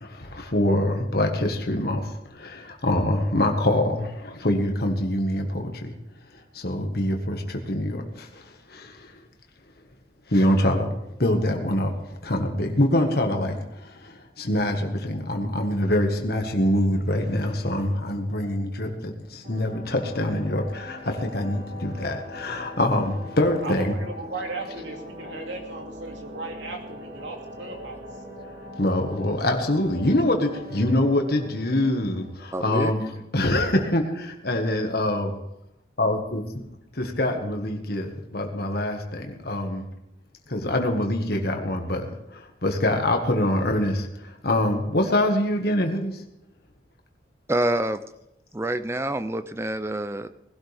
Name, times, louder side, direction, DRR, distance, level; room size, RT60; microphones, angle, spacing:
voice 1, 0.0-5.9 6.5-9.2 10.3-10.9 11.2-23.9 28.8-33.0 33.3-35.4 36.0-36.4 37.2-39.8 40.5-46.2, left 1 dB, 50° left, 3 dB, 1.6 m, -25 dB
sound 1, 19.4-33.0, left 1 dB, 40° right, 2.0 m, -41 dB
voice 2, 23.6-28.2 33.1-33.2, right 3 dB, 75° right, 1 dB, 2.7 m, -36 dB
voice 3, 32.5-32.9 47.5-48.0 48.5-50.3, right 1 dB, 15° right, 12 dB, 0.5 m, -26 dB
19.5 x 12.0 x 3.5 m, 0.84 s
head